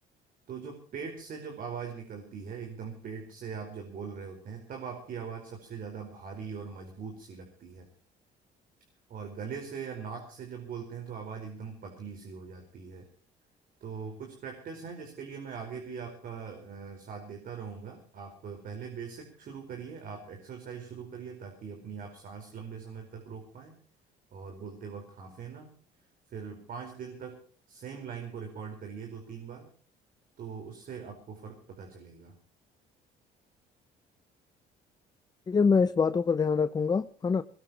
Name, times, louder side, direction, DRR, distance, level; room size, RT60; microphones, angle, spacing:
voice 1, 0.5-7.9 9.1-13.1 13.8-23.8 24.3-25.7 26.3-27.4 27.7-29.7 30.4-32.3, right 6 dB, 55° right, 3 dB, 4.6 m, -41 dB
voice 2, 35.5-37.4, left 5 dB, 25° left, 11 dB, 0.8 m, -25 dB
21.0 x 20.0 x 3.0 m, 0.43 s
cardioid pair, 110°, 17 cm